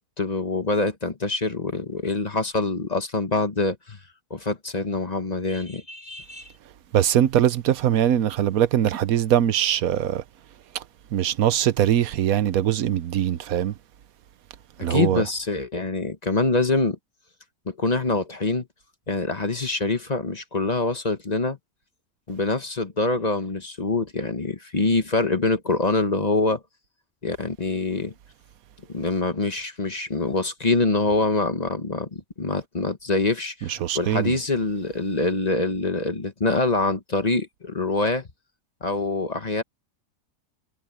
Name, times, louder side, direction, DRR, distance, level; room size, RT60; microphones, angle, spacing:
voice 1, 0.0-4.0 4.3-6.5 14.8-17.0 17.7-18.7 19.1-21.6 22.3-26.6 27.2-28.1 28.9-38.3 38.8-39.6, left 3 dB, 30° left, 1.2 m, -25 dB
voice 2, 6.9-10.2 11.1-13.7 14.8-15.2 33.7-34.4, right 10 dB, 85° right, 1.2 m, -22 dB
omnidirectional pair, 1.5 m